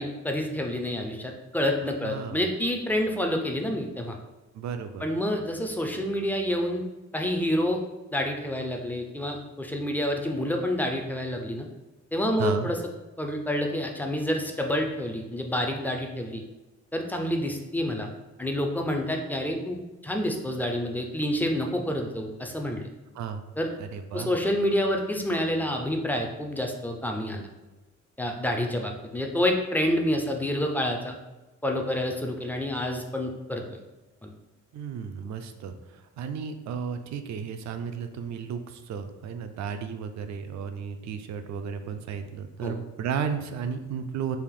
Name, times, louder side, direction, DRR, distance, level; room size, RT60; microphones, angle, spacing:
voice 1, 0.0-4.2 5.0-6.8 7.1-7.8 8.1-11.7 12.1-12.8 13.2-16.4 16.9-18.1 18.4-22.9 23.6-23.7 24.1-27.5 28.2-31.2 31.6-33.6 34.2-34.3 42.6-42.8, left 1 dB, 5° left, 2 dB, 0.4 m, -28 dB
voice 2, 2.0-2.5 4.5-5.1 12.4-12.7 23.1-23.4 23.8-24.3 34.7-44.4, right 7 dB, 65° right, 8 dB, 0.4 m, -33 dB
3.4 x 2.5 x 3.6 m, 1.1 s
cardioid pair, 125°, 30 cm